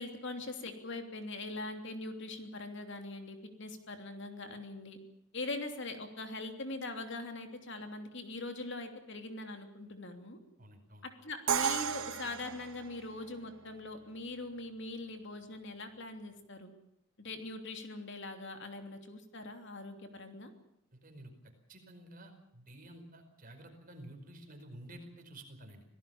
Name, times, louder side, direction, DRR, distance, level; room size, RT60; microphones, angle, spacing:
voice 1, 0.0-5.0 5.3-10.4 11.0-16.7 17.2-20.5, left 2 dB, 55° left, 6 dB, 3.0 m, -42 dB
voice 2, 10.6-11.0 20.9-21.3 21.7-25.8, right 1 dB, 40° right, 5 dB, 5.0 m, -51 dB
Crash cymbal, 11.5-13.4, right 8 dB, 70° right, 0.8 m, -34 dB
26.0 x 17.5 x 7.1 m, 0.78 s
head